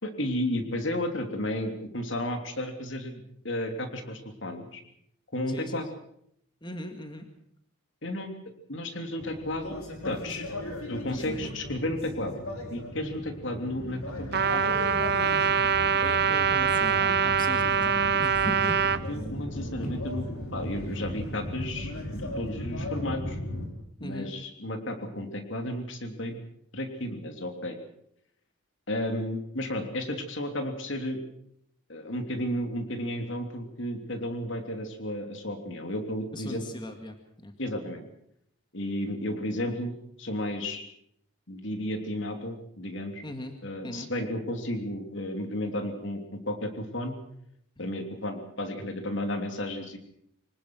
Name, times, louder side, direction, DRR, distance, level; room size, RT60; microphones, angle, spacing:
voice 1, 0.0-4.8 5.3-5.9 8.0-8.3 8.7-9.8 10.0-10.4 10.9-12.4 12.7-14.7 19.1-23.4 24.0-26.4 26.7-27.8 28.9-31.2 31.9-36.6 37.6-38.1 38.7-40.8 41.5-43.2 43.6-47.2 47.8-50.0, left 1 dB, 60° left, 5 dB, 3.2 m, -33 dB
voice 2, 5.5-5.8 6.6-7.3 11.1-11.5 16.0-18.0 18.2-18.8 24.0-24.3 36.3-37.5 43.2-43.6 43.8-44.1 47.8-47.9, left 1 dB, 20° left, 5 dB, 2.1 m, -39 dB
sound 1, 9.2-23.7, left 1 dB, 85° left, 5.3 m, -36 dB
Trumpet, 14.3-19.0, right 6 dB, 50° right, 0.9 m, -24 dB
25.5 x 19.0 x 6.2 m, 0.71 s
head